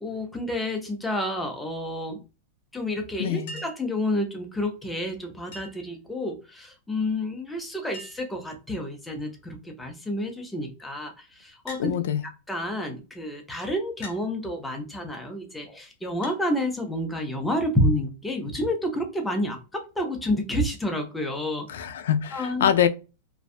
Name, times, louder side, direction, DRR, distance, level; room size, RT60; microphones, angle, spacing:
voice 1, 0.0-2.2 2.7-11.9 12.5-21.7 22.3-22.7, left 1 dB, 5° left, 0.4 m, -29 dB
voice 2, 3.2-3.6 11.8-12.2 21.7-22.9, left 9 dB, 70° left, 0.3 m, -24 dB
Chink clink, 3.5-3.9 5.5-5.9 7.3-7.4 7.6-7.7 7.9-8.4 9.2-9.5 11.7-11.9 13.0-13.1 14.0-14.3 16.2-16.4 18.6-18.7 20.1-20.2, left 1 dB, 40° left, 0.9 m, -42 dB
2.5 x 2.2 x 2.4 m
supercardioid pair, 175°, 0 cm